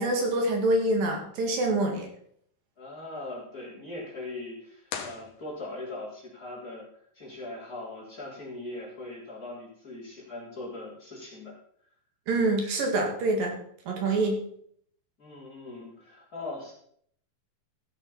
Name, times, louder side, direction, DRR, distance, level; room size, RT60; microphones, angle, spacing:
voice 1, 0.0-2.1 12.3-13.6 13.9-14.4, right 2 dB, 75° right, 2 dB, 3.9 m, -26 dB
voice 2, 2.8-6.8 7.1-11.5 15.2-16.7, left 2 dB, 25° left, -5 dB, 3.8 m, -40 dB
sound 1, 4.8-6.0, left 7 dB, 70° left, 2.7 m, -40 dB
14.5 x 7.1 x 5.6 m, 0.65 s
omnidirectional pair, 4.0 m